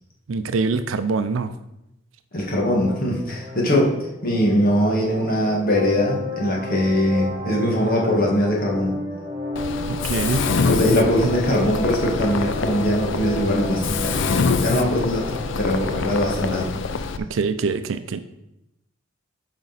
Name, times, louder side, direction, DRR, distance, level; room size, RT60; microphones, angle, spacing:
voice 1, 0.3-1.5 10.0-10.5 17.3-18.2, right 4 dB, 80° right, 11 dB, 0.5 m, -24 dB
voice 2, 2.3-3.9 4.2-9.0 10.6-15.2 15.6-16.7, equal, 50° left, -1 dB, 1.7 m, -21 dB
sound 1, 2.6-16.6, left 1 dB, 20° right, 2.8 m, -32 dB
Mechanisms, 9.6-17.2, left 4 dB, 65° left, 0.5 m, -25 dB
9.0 x 5.2 x 4.1 m, 0.87 s
head